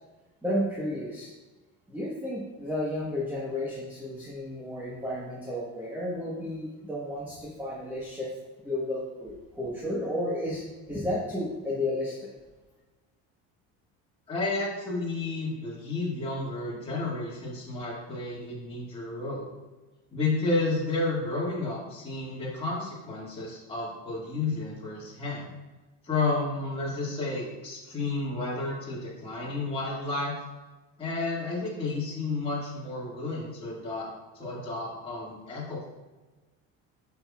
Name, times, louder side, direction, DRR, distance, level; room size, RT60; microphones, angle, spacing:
voice 1, 0.4-1.3 1.9-8.3 8.6-12.3, left 1 dB, 5° right, -6 dB, 1.3 m, -32 dB
voice 2, 14.3-19.5 20.1-25.5 26.0-30.4 31.0-34.1 34.3-35.8, left 3 dB, 15° left, -8 dB, 2.0 m, -31 dB
7.6 x 6.0 x 2.4 m, 1.2 s
supercardioid pair, 100°, 35 cm